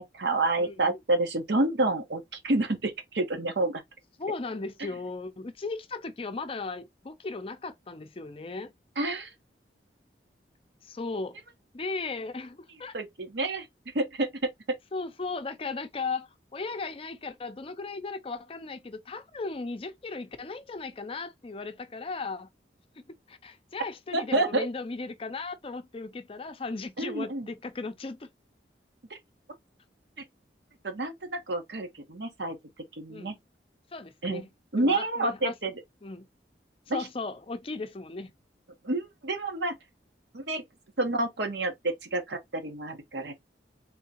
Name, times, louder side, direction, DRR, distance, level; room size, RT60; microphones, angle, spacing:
voice 1, 0.0-3.8 4.8-4.9 9.0-9.3 12.9-13.7 13.9-14.3 24.1-24.7 27.0-27.5 29.1-29.2 30.8-32.6 33.0-33.3 34.2-34.4 34.7-35.7 36.9-37.0 38.8-39.8 40.3-40.6 41.0-43.3, right 2 dB, 70° right, 1.1 m, -29 dB
voice 2, 0.6-1.0 4.2-8.7 10.8-11.4 11.7-13.0 14.9-22.5 23.1-28.3 33.1-33.4 33.9-34.5 34.7-35.5 36.0-36.3 36.9-38.3, left 3 dB, 30° left, 0.5 m, -36 dB
3.7 x 3.5 x 2.8 m
head